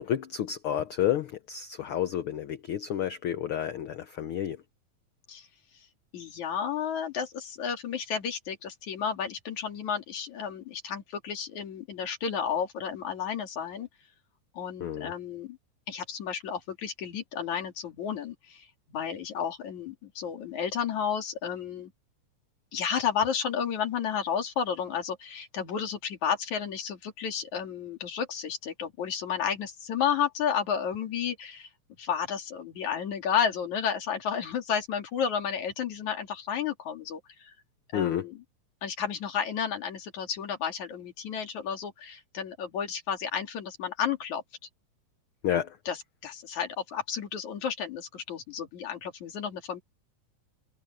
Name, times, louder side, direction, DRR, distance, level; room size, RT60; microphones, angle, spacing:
voice 1, 0.0-4.6 14.8-15.1 37.9-38.3 45.4-45.8, left 10 dB, 85° left, 1.2 m, -30 dB
voice 2, 6.1-13.9 14.6-15.6 15.9-21.9 22.7-31.7 32.0-37.5 37.9-38.4 38.8-44.4 45.5-45.6 45.9-49.8, left 7 dB, 65° left, 3.8 m, -32 dB
omnidirectional pair, 3.6 m